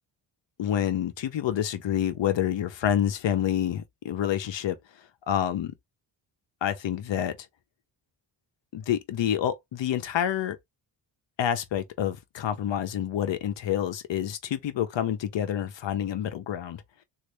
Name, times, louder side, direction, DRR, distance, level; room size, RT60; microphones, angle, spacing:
voice 1, 0.6-4.8 5.3-5.7 6.6-7.4 8.7-10.6 11.4-16.8, left 10 dB, 65° left, 0.8 m, -28 dB
3.2 x 2.7 x 3.1 m
wide cardioid pair, 130°, 48 cm